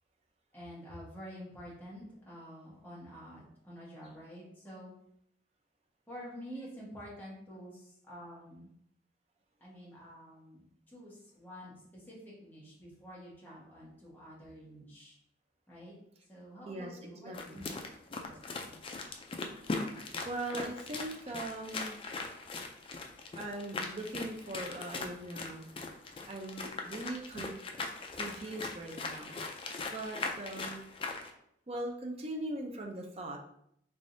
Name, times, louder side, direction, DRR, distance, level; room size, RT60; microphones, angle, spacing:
voice 1, 0.5-4.9 6.1-8.7 9.6-15.2 15.7-15.9 16.3-17.6 18.2-18.8, equal, 10° left, -7 dB, 1.2 m, -49 dB
voice 2, 17.2-17.6 20.2-22.0 23.3-25.7 26.3-27.5 28.1-29.4 29.9-30.8 31.7-33.4, right 1 dB, 35° right, 1 dB, 0.6 m, -40 dB
sound 1, 17.3-31.3, left 3 dB, 30° left, 0.3 m, -40 dB
3.5 x 3.4 x 2.6 m, 0.72 s
head